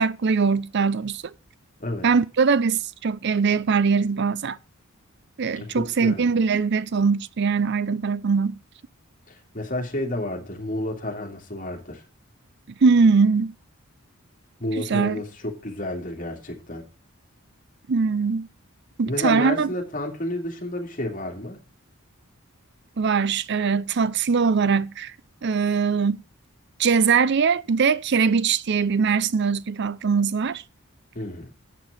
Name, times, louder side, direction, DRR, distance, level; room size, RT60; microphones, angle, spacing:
voice 1, 0.0-1.3 2.0-4.6 5.4-8.6 12.7-13.5 14.8-15.2 17.9-18.5 19.0-19.7 23.0-25.1 25.4-26.2 26.8-30.6, right 5 dB, 50° right, 0.5 m, -21 dB
voice 2, 5.6-6.2 9.3-12.0 14.6-16.8 19.1-21.6 31.1-31.5, left 1 dB, 40° left, 2.5 m, -31 dB
9.1 x 6.1 x 7.0 m
head